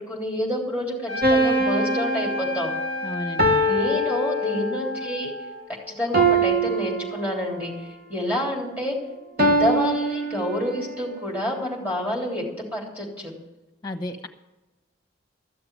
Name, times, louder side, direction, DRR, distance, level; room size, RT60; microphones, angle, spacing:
voice 1, 0.0-2.7 3.6-5.3 5.9-7.7 8.1-9.0 9.4-13.3, left 1 dB, 10° right, -3 dB, 3.4 m, -28 dB
Trumpet, 1.1-5.8, left 1 dB, 85° right, 5.9 m, -32 dB
sound 1, 1.2-5.0 6.1-7.7 9.4-10.9, right 2 dB, 50° right, 1.0 m, -23 dB
voice 2, 3.0-3.6 13.8-14.3, left 1 dB, 20° left, 4 dB, 1.1 m, -32 dB
14.0 x 6.9 x 9.5 m, 1.0 s
head